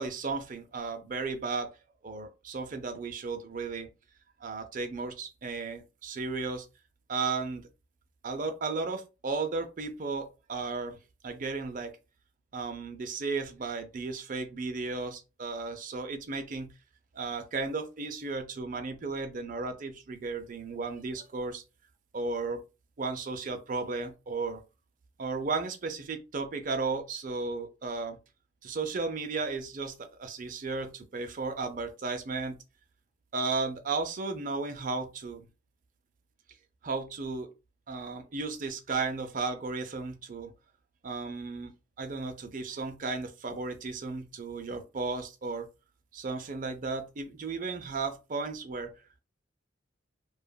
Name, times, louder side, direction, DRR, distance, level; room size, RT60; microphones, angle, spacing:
voice 1, 0.0-1.7 2.0-3.9 4.4-6.7 7.1-7.7 8.2-11.0 11.2-12.0 12.5-16.7 17.1-21.6 22.1-22.6 23.0-24.6 25.2-28.2 28.6-32.6 33.3-35.5 36.8-37.5 37.9-40.5 41.0-41.7 42.0-45.7 46.1-48.9, right 4 dB, 45° right, 0.5 m, -34 dB
2.8 x 2.4 x 2.2 m
head